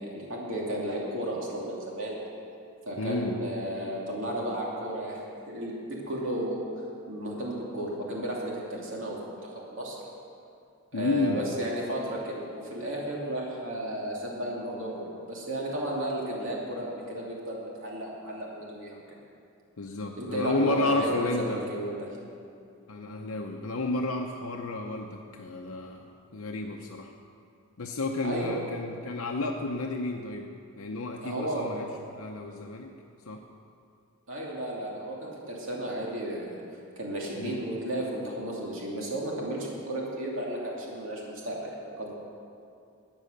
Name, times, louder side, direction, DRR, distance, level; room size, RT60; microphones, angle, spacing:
voice 1, 0.0-2.2 2.9-5.8 6.1-6.6 7.1-10.0 10.9-19.2 20.2-22.1 28.2-28.6 31.2-31.7 34.3-36.6 37.0-42.1, right 1 dB, 60° right, -3 dB, 2.8 m, -33 dB
voice 2, 3.0-3.4 10.9-11.5 19.8-21.6 22.9-27.1 27.8-30.5 30.8-32.9 33.2-33.4 37.4-37.6, left 2 dB, 70° left, 2 dB, 0.7 m, -31 dB
13.5 x 9.2 x 6.6 m, 2.5 s
head